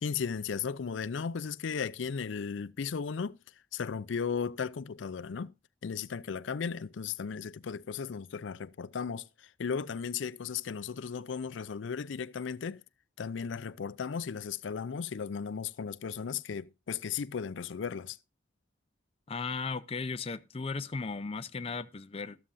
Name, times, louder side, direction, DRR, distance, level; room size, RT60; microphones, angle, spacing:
voice 1, 0.0-3.4 3.7-5.5 5.8-12.8 13.2-18.2, left 6 dB, 85° left, 0.5 m, -35 dB
voice 2, 19.3-22.4, left 4 dB, 30° left, 0.5 m, -36 dB
13.0 x 12.5 x 2.6 m
head